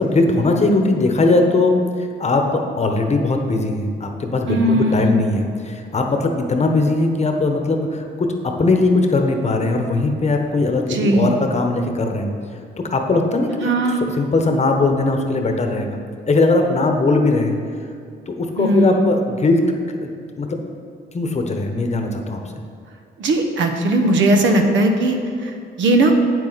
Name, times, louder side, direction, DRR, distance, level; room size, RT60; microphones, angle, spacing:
voice 1, 0.0-8.3 8.6-12.3 12.9-13.7 14.0-16.0 16.3-17.6 18.3-20.1 20.4-20.6 21.1-22.4, left 2 dB, 35° left, 4 dB, 1.0 m, -19 dB
voice 2, 4.5-5.1 10.9-11.3 13.6-14.0 18.6-19.0 23.2-25.5 25.8-26.1, right 1 dB, 70° right, 4 dB, 1.0 m, -18 dB
8.5 x 7.7 x 4.1 m, 2.2 s
cardioid pair, 90°, 20 cm